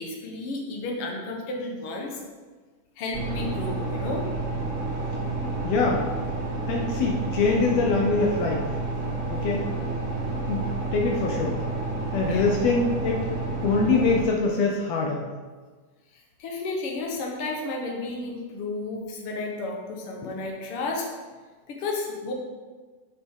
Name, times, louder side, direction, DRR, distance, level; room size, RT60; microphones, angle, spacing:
voice 1, 0.0-2.2 3.0-4.3 12.3-12.5 16.1-21.1 21.7-22.3, left 3 dB, 55° left, 0 dB, 1.6 m, -32 dB
sound 1, 3.1-14.2, right 3 dB, 35° right, 1.4 m, -30 dB
voice 2, 5.6-6.1 6.7-8.7 9.3-9.7 10.5-10.6 10.9-11.6 12.1-13.2 13.6-15.3 20.2-20.3, left 4 dB, 80° left, 0 dB, 1.4 m, -24 dB
11.0 x 6.1 x 3.7 m, 1.4 s
omnidirectional pair, 4.0 m